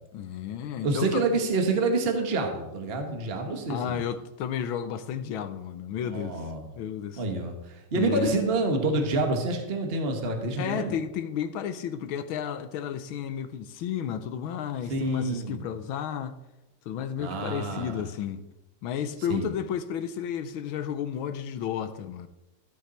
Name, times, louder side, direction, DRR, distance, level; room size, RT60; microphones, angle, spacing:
voice 1, 0.1-1.2 3.7-6.5 6.8-7.2 7.9-8.4 10.6-16.3 16.9-18.4 18.8-22.3, left 8 dB, 75° left, 1.4 m, -32 dB
voice 2, 0.8-4.0 6.0-6.6 7.2-10.9 14.9-15.6 17.2-18.1 19.3-19.5, right 3 dB, 30° right, 1.5 m, -28 dB
14.5 x 8.2 x 4.4 m
omnidirectional pair, 2.4 m